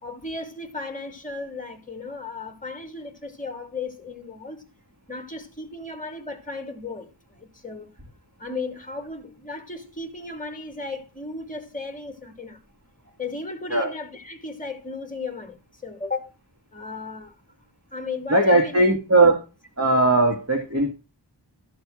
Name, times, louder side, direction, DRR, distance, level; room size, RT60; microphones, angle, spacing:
voice 1, 0.0-4.6 5.1-7.9 8.4-12.6 13.2-16.3 16.7-17.3 17.9-18.8, left 3 dB, 20° left, 2.4 m, -35 dB
voice 2, 18.3-19.4 19.8-20.9, right 2 dB, 35° right, 2.0 m, -18 dB
13.5 x 4.5 x 6.3 m
wide cardioid pair, 55°, 44 cm